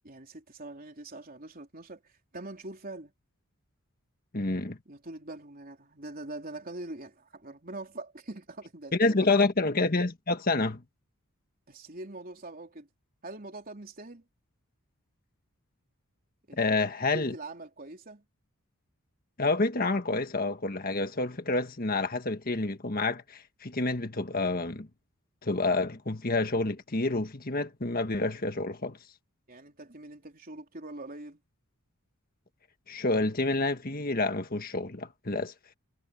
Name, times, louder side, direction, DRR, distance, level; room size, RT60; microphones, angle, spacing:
voice 1, 0.0-3.1 4.9-9.3 11.7-12.9 13.2-14.3 16.5-16.8 17.1-18.2 29.5-31.4, right 2 dB, 40° right, 3.7 m, -43 dB
voice 2, 4.3-4.8 9.0-10.8 16.6-17.3 19.4-24.9 25.4-29.0 32.9-35.5, left 3 dB, 40° left, 1.5 m, -28 dB
head